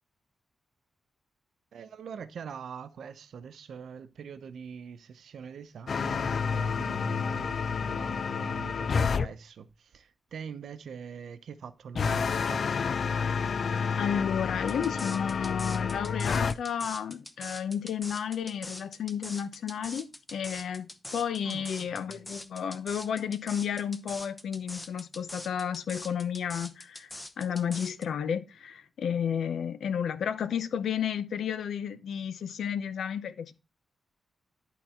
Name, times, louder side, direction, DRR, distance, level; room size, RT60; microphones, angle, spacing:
voice 1, 1.7-12.7 21.4-22.2, right 7 dB, 75° right, 0.8 m, -43 dB
sound 1, 5.9-9.3 11.9-16.5, left 6 dB, 55° left, 0.3 m, -29 dB
voice 2, 14.0-27.1 27.4-33.5, left 8 dB, 85° left, 0.7 m, -32 dB
sound 2, 14.7-28.0, left 1 dB, 15° left, 0.7 m, -43 dB
11.0 x 4.1 x 4.4 m
wide cardioid pair, 135°, 0 cm